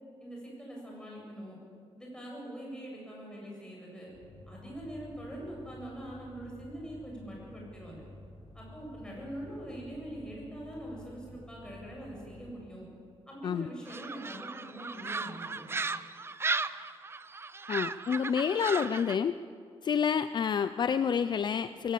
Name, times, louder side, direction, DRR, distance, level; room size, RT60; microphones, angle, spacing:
voice 1, 0.2-1.6 2.0-4.1 4.5-8.0 8.5-12.9 13.3-15.7, right 1 dB, 10° left, -3 dB, 7.8 m, -43 dB
sound 1, 4.1-12.5, left 1 dB, 80° left, 5.5 m, -51 dB
sound 2, 13.9-19.2, right 4 dB, 25° right, 0.6 m, -36 dB
voice 2, 17.7-19.4 19.8-21.9, left 7 dB, 45° left, 12 dB, 0.5 m, -29 dB
23.0 x 16.5 x 8.5 m, 2.3 s
wide cardioid pair, 150°, 10 cm